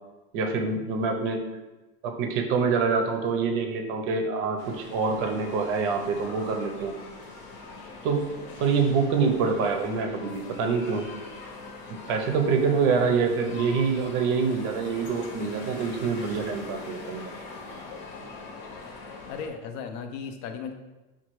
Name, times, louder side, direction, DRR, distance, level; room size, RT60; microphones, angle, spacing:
voice 1, 0.3-1.4 2.0-6.9 8.0-8.2 8.6-11.1 12.1-17.3, right 5 dB, 45° right, 4 dB, 0.6 m, -26 dB
sound 1, 4.6-19.5, left 3 dB, 65° left, 0.9 m, -42 dB
voice 2, 19.3-20.7, left 6 dB, 50° left, 6 dB, 0.5 m, -36 dB
5.5 x 2.3 x 3.0 m, 1.1 s
supercardioid pair, 155°, 30 cm